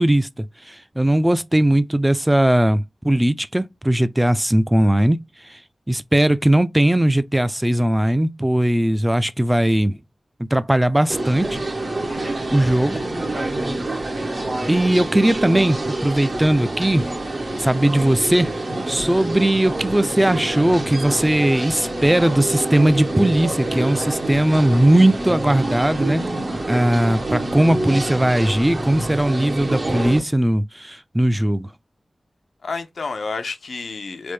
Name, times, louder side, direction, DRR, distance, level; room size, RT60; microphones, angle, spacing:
voice 1, 0.0-5.2 5.9-10.0 10.4-11.6 12.5-13.1 14.7-17.1 17.6-18.5 18.9-26.2 26.7-31.7, right 1 dB, 15° right, 0.3 m, -18 dB
sound 1, 11.1-30.2, right 2 dB, 55° right, 0.8 m, -27 dB
voice 2, 12.0-12.4 32.6-34.3, left 4 dB, 85° left, 0.4 m, -30 dB
3.3 x 2.1 x 3.1 m
cardioid pair, 55°, 0 cm